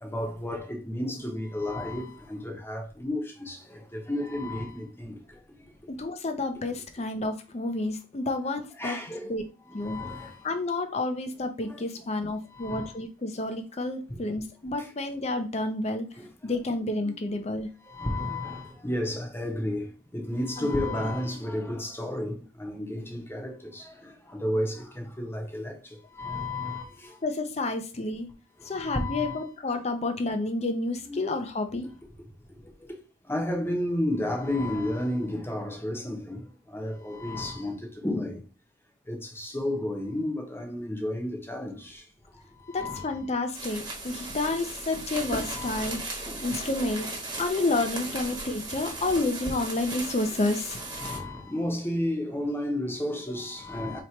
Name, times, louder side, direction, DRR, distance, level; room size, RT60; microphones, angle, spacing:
voice 1, 0.0-5.2 8.7-9.3 9.7-10.4 11.6-11.8 12.5-12.9 16.2-16.3 17.0-17.1 17.9-19.9 20.1-25.7 26.1-27.2 28.7-29.5 31.1-31.3 33.3-36.4 36.7-38.4 39.1-42.0 42.7-43.2 45.4-45.8 50.9-54.0, left 1 dB, 10° left, 0.9 m, -32 dB
voice 2, 6.0-9.0 9.3-9.4 9.7-10.0 10.4-16.1 16.4-17.7 20.6-21.0 27.2-28.3 28.6-31.9 42.7-46.0 46.4-47.1 47.4-50.8, left 2 dB, 30° left, 0.5 m, -30 dB
sound 1, 43.5-51.2, right 2 dB, 20° right, 1.2 m, -36 dB
3.0 x 2.9 x 4.4 m
head